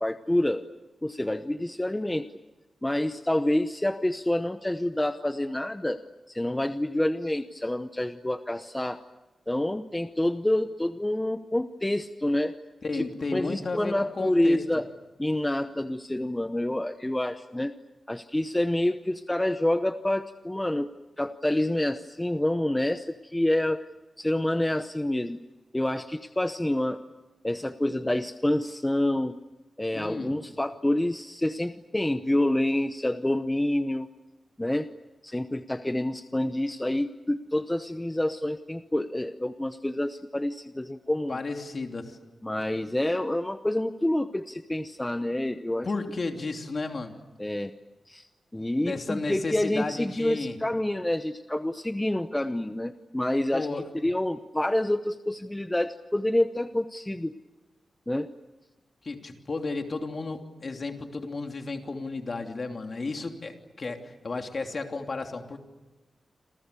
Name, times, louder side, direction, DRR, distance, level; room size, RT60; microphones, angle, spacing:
voice 1, 0.0-0.6 1.0-2.3 2.8-6.0 6.3-9.0 9.5-12.5 12.9-13.0 13.3-14.8 15.2-17.7 18.1-20.9 21.2-23.9 24.2-25.4 25.7-27.0 27.4-29.4 29.8-34.1 34.6-34.9 35.2-41.4 42.4-45.9 47.4-47.7 48.1-48.3 48.5-53.7 54.0-57.3 58.1-58.3, left 1 dB, 10° left, 9 dB, 0.8 m, -27 dB
voice 2, 12.8-14.6 29.9-30.4 41.3-42.2 45.8-47.2 48.6-50.6 53.5-53.9 59.0-65.6, left 3 dB, 45° left, 4 dB, 3.0 m, -33 dB
28.5 x 27.5 x 6.9 m, 1.1 s
wide cardioid pair, 110°, 0 cm